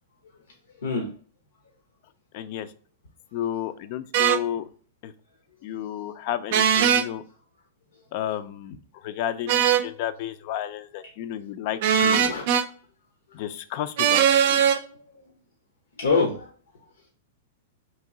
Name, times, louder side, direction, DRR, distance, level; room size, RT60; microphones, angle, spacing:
voice 1, 0.8-1.1 11.0-11.1 12.0-12.5 13.3-13.4 14.3-14.6 15.1-15.2 16.0-16.5, left 4 dB, 85° left, 1 dB, 0.7 m, -27 dB
voice 2, 2.3-2.7 3.3-4.6 5.0-5.1 5.6-7.2 8.1-12.3 13.3-14.8, left 11 dB, 50° left, 12 dB, 0.4 m, -32 dB
sound 1, 4.1-4.4 6.5-7.1 9.5-9.9 11.8-12.7 14.0-14.8, right 8 dB, 60° right, 0.4 m, -20 dB
2.9 x 2.6 x 3.7 m, 0.44 s
hypercardioid pair, 125°, 0 cm